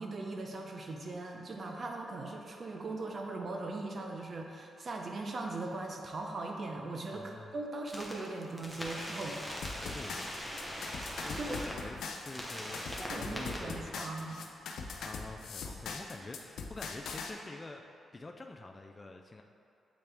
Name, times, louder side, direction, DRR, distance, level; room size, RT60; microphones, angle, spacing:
voice 1, 0.0-10.0 11.0-11.7 13.0-14.4, right 2 dB, 45° right, 2 dB, 0.7 m, -40 dB
voice 2, 7.1-7.5 9.8-10.5 11.2-14.3 14.9-17.8 18.1-19.4, left 2 dB, 25° left, 3 dB, 0.3 m, -47 dB
sound 1, 7.9-8.1 8.6-11.7 12.1-13.6, equal, 5° right, 1.0 m, -41 dB
sound 2, 9.6-17.3, left 4 dB, 80° left, 0.5 m, -41 dB
8.2 x 3.4 x 3.4 m, 2.5 s
cardioid pair, 105°, 0 cm